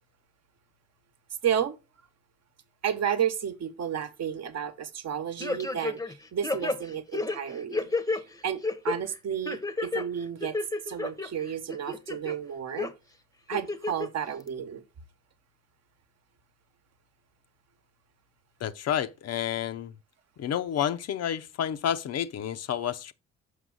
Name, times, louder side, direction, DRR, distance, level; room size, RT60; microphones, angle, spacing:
voice 1, 1.4-1.8 2.8-7.9 8.1-10.6 10.9-12.9 13.5-14.8, right 8 dB, 60° right, 1.0 m, -32 dB
sound 1, 5.4-6.1 6.4-8.2 8.6-9.0 9.5-10.0 10.4-11.3 11.7-12.3 12.8-12.9 13.5-14.1 14.5-14.6, left 3 dB, 10° left, 0.7 m, -30 dB
voice 2, 18.6-19.9 20.4-23.1, left 9 dB, 55° left, 0.6 m, -30 dB
6.4 x 5.2 x 3.8 m
cardioid pair, 90°, 30 cm